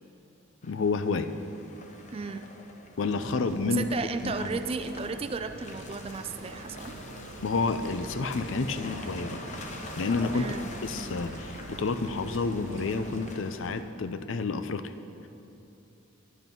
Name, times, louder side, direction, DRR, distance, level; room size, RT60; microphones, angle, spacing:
voice 1, 0.6-1.3 3.0-3.8 4.2-4.6 7.4-9.5 10.0-10.5 10.8-14.9, left 4 dB, 70° left, 10 dB, 0.5 m, -29 dB
Car passing by / Engine, 0.6-13.8, left 2 dB, 35° left, 0.8 m, -44 dB
voice 2, 2.1-2.5 3.7-7.0 10.3-10.6, right 4 dB, 30° right, 10 dB, 0.3 m, -34 dB
sound 1, 3.0-13.4, right 2 dB, 65° right, 0.7 m, -45 dB
10.5 x 8.4 x 5.3 m, 2.8 s
head